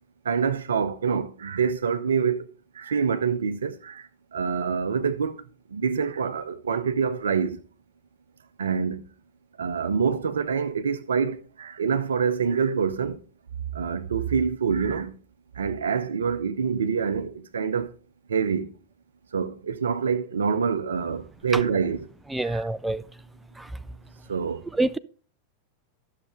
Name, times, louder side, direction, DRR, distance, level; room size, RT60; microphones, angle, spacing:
voice 1, 0.2-7.6 8.6-9.1 9.6-13.2 13.7-15.1 15.5-17.9 18.3-18.7 19.3-22.1 22.4-22.7 24.3-24.6, right 6 dB, 70° right, 0.6 m, -26 dB
voice 2, 22.3-23.0 23.6-23.7 24.8-25.0, right 2 dB, 5° right, 0.3 m, -26 dB
12.5 x 6.6 x 3.6 m
figure-of-eight pair, 90°, 0 cm